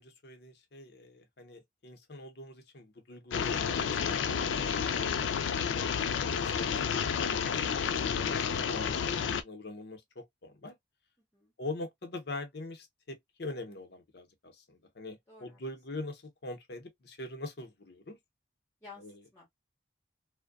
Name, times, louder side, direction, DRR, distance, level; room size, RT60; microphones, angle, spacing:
voice 1, 0.0-5.0 5.7-10.8 11.6-18.2 19.0-19.1, left 2 dB, 60° left, 0.7 m, -43 dB
sound 1, 3.3-9.4, left 7 dB, 85° left, 0.4 m, -30 dB
voice 2, 11.2-11.5 15.3-15.6 18.8-19.5, left 4 dB, 15° left, 1.0 m, -54 dB
2.6 x 2.1 x 2.3 m
head